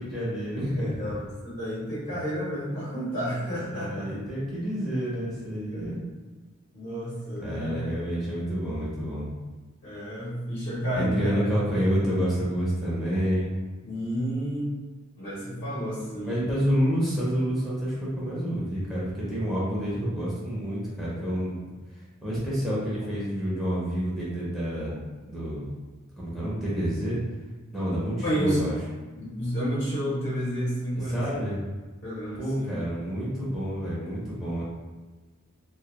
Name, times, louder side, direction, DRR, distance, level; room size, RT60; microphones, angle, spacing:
voice 1, 0.0-1.1 3.7-6.0 7.4-9.3 10.9-13.5 16.3-21.6 22.2-24.9 25.3-25.7 26.2-27.2 27.7-28.7 31.1-31.6 32.4-34.6, equal, ahead, -8 dB, 0.6 m, -28 dB
voice 2, 0.7-4.1 5.7-6.0 6.7-7.8 9.8-11.5 13.8-14.7 15.2-16.4 28.2-28.8 29.2-31.2 32.0-32.7, equal, 50° left, -9 dB, 0.7 m, -30 dB
2.2 x 2.1 x 2.8 m, 1.3 s
head